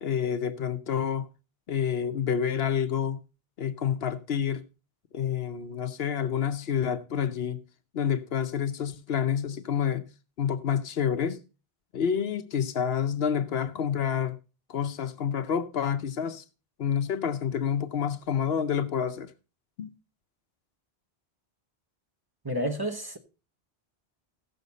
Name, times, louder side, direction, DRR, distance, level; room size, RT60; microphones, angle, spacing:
voice 1, 0.0-1.3 1.7-3.2 3.6-4.6 5.1-7.6 7.9-10.1 10.4-11.4 11.9-14.4 14.7-16.4 16.8-19.3 19.8-19.9, left 8 dB, 70° left, 1.0 m, -28 dB
voice 2, 22.4-23.2, equal, 20° right, 1.0 m, -30 dB
15.5 x 6.6 x 4.0 m
omnidirectional pair, 1.1 m